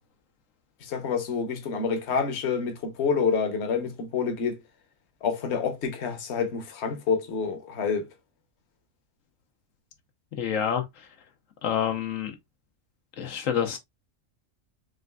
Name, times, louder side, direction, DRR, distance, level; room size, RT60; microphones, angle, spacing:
voice 1, 0.8-4.6 5.2-8.1, left 5 dB, 60° left, 1.2 m, -28 dB
voice 2, 10.3-11.1 11.6-12.4 13.2-13.8, left 8 dB, 80° left, 1.2 m, -28 dB
6.2 x 2.5 x 2.3 m
omnidirectional pair, 1.3 m